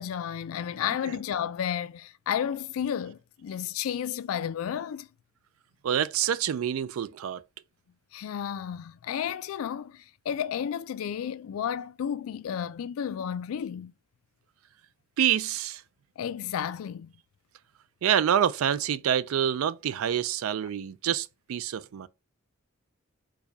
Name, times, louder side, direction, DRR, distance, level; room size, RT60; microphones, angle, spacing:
voice 1, 0.0-5.1 8.1-13.9 16.2-17.1, left 8 dB, 80° left, 0.3 m, -32 dB
voice 2, 5.8-7.4 15.2-15.8 18.0-22.1, right 9 dB, 80° right, 0.3 m, -27 dB
4.6 x 2.2 x 2.6 m
head